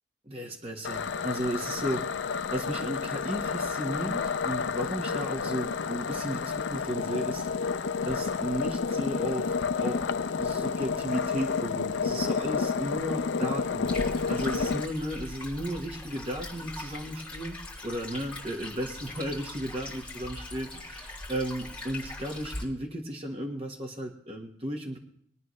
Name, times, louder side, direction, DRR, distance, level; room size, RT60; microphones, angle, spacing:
voice 1, 0.3-10.0 10.4-13.9 14.3-17.6 17.8-25.0, equal, 35° right, 1 dB, 1.4 m, -34 dB
sound 1, 0.8-14.9, left 5 dB, 75° left, 0.4 m, -30 dB
Stream, 13.8-22.6, left 1 dB, 5° left, 5.4 m, -41 dB
22.5 x 9.8 x 3.2 m, 0.64 s
head